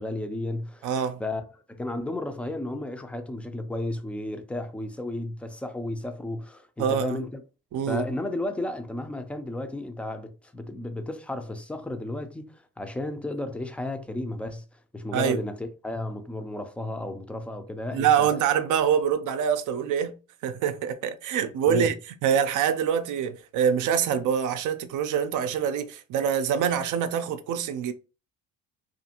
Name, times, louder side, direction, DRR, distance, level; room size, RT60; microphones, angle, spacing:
voice 1, 0.0-0.9 1.2-7.4 7.9-14.6 14.9-18.3 21.6-21.9, left 1 dB, 5° left, 0.4 m, -33 dB
voice 2, 0.8-1.2 6.8-7.2 7.7-8.0 15.1-15.4 17.9-20.2 20.4-21.9 22.2-27.9, right 8 dB, 60° right, 0.5 m, -25 dB
2.5 x 2.4 x 2.8 m
supercardioid pair, 85°, 34 cm